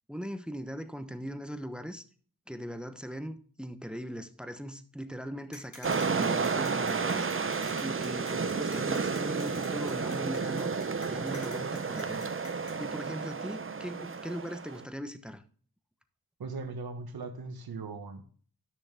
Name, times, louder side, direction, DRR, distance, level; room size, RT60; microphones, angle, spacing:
voice 1, 0.1-2.0 2.5-7.5 7.8-12.3 12.8-15.4, equal, ahead, 1.0 m, -40 dB
sound 1, 5.5-12.7, left 2 dB, 55° left, 4.3 m, -49 dB
sound 2, 5.8-14.8, right 5 dB, 35° right, 0.8 m, -32 dB
voice 2, 16.4-18.2, right 4 dB, 80° right, 1.6 m, -39 dB
13.0 x 6.3 x 3.4 m
cardioid pair, 65°, 36 cm